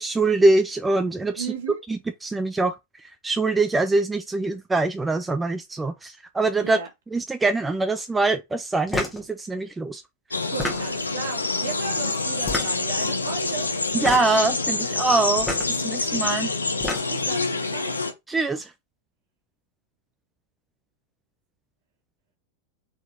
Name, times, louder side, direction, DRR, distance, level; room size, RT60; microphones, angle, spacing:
voice 1, 0.0-1.5 1.9-2.7 3.2-6.8 7.1-10.0 13.9-16.5 18.3-18.7, right 3 dB, 10° right, 0.4 m, -23 dB
voice 2, 1.4-1.8 6.6-6.9 10.5-13.7 14.8-15.1 17.1-17.9, right 6 dB, 60° right, 1.9 m, -35 dB
sound 1, 8.9-9.2 10.4-11.1 12.4-13.0 13.9-14.4 15.4-15.7 16.6-17.3, left 2 dB, 10° left, 1.5 m, -29 dB
sound 2, 10.3-18.1, left 3 dB, 80° left, 0.7 m, -26 dB
4.2 x 3.8 x 2.7 m
figure-of-eight pair, 90°, 0 cm